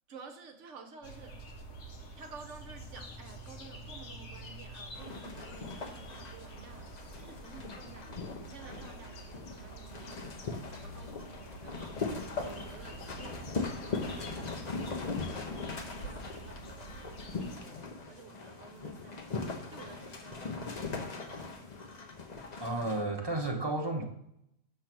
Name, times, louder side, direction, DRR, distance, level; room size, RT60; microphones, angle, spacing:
voice 1, 0.1-1.4 2.1-12.1 12.4-19.4 19.7-21.3, right 4 dB, 65° right, 1.1 m, -52 dB
sound 1, 1.0-17.6, right 2 dB, 60° left, 1.1 m, -47 dB
sound 2, 4.9-23.0, left 4 dB, 40° left, 0.7 m, -40 dB
voice 2, 22.6-24.1, right 2 dB, 20° right, 0.8 m, -32 dB
6.4 x 3.2 x 5.9 m
omnidirectional pair, 1.4 m